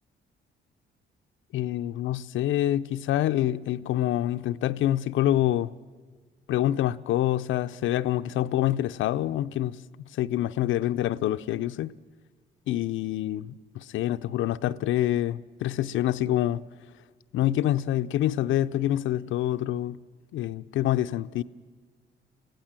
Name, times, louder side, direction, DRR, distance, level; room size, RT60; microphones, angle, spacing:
voice 1, 1.5-5.7 6.5-9.8 10.1-11.9 12.7-16.7 17.3-20.0 20.3-21.4, left 13 dB, 80° left, 0.5 m, -26 dB
22.5 x 16.0 x 7.6 m
cardioid pair, 90°, 20 cm